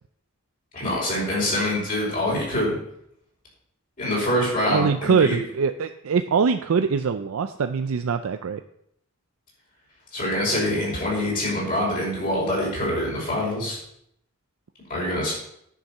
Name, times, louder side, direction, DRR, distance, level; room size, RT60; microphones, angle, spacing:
voice 1, 0.7-2.7 4.0-5.4 10.1-13.8 14.9-15.3, left 1 dB, 40° left, -5 dB, 4.9 m, -25 dB
voice 2, 4.7-8.6, right 5 dB, 80° right, 8 dB, 0.4 m, -23 dB
10.0 x 6.5 x 5.5 m, 0.74 s
head